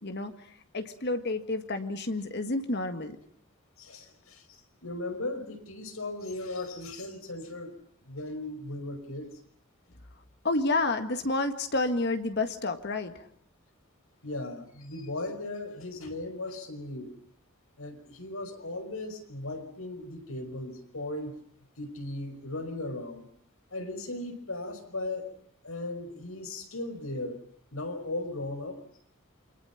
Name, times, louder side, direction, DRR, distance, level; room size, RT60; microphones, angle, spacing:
voice 1, 0.7-3.2 10.4-13.1, left 2 dB, 55° left, 7 dB, 1.8 m, -29 dB
voice 2, 3.8-7.7 8.0-9.3 14.2-17.1 17.8-21.4 21.8-23.3 23.7-25.3 25.6-27.4 27.7-28.9, left 2 dB, 90° left, 7 dB, 5.3 m, -37 dB
28.5 x 25.0 x 5.9 m, 0.62 s
head